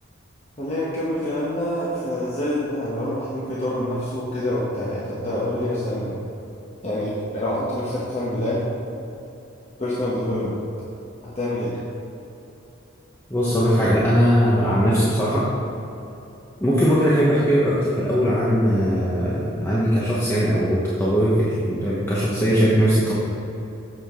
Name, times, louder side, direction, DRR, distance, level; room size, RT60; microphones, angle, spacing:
voice 1, 0.6-6.1 6.8-8.7 9.8-10.6 11.2-11.8, left 1 dB, 35° left, -7 dB, 1.1 m, -26 dB
voice 2, 13.3-15.4 16.6-23.1, equal, 15° left, -8 dB, 1.0 m, -20 dB
8.3 x 6.8 x 3.7 m, 2.9 s
head